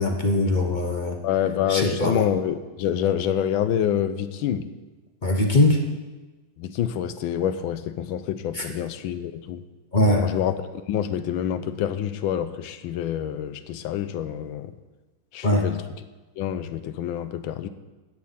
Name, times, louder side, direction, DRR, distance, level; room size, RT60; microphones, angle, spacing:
voice 1, 0.0-1.2 1.7-2.2 5.2-5.8 8.5-8.7 9.9-10.2 15.4-15.6, left 1 dB, 40° left, 3 dB, 0.7 m, -21 dB
voice 2, 1.2-4.7 6.6-9.6 10.2-14.7 15.3-15.8 16.4-17.7, left 10 dB, 80° left, 11 dB, 1.4 m, -27 dB
11.0 x 8.6 x 5.7 m, 1.2 s
omnidirectional pair, 2.3 m